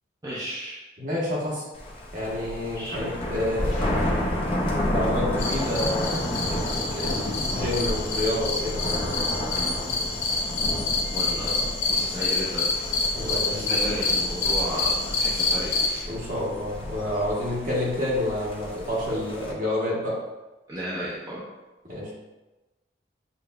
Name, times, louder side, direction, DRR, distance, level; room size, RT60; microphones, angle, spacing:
voice 1, 0.2-0.8 2.7-3.0 11.1-12.7 13.2-16.0 20.7-21.4, equal, 20° right, -9 dB, 0.7 m, -33 dB
voice 2, 1.0-1.6 2.1-4.0 4.9-6.3 6.9-9.2 13.1-13.7 16.0-20.2 21.8-22.1, left 1 dB, 45° right, -6 dB, 1.3 m, -29 dB
Thunder, 1.7-19.5, left 1 dB, 30° left, 0.5 m, -31 dB
sound 1, 3.6-6.6, equal, 50° left, 1.4 m, -36 dB
sound 2, 5.4-16.0, left 3 dB, 75° left, 0.6 m, -27 dB
6.8 x 2.5 x 2.2 m, 1.1 s
head